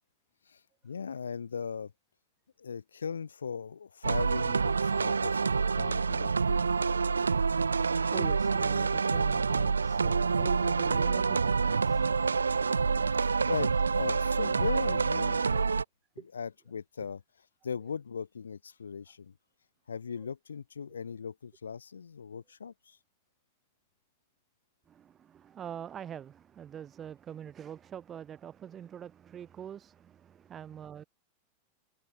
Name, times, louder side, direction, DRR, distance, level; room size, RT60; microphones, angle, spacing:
voice 1, 0.5-1.9 2.6-6.7 13.1-15.7 16.3-17.2 17.6-19.3 19.9-23.0, left 6 dB, 70° left, 1.0 m, -38 dB
sound 1, 4.0-15.8, right 5 dB, 75° right, 0.4 m, -27 dB
voice 2, 7.9-12.4 16.2-16.3 20.2-20.3 24.9-31.0, right 9 dB, 25° right, 3.6 m, -45 dB
figure-of-eight pair, 90°, 0 cm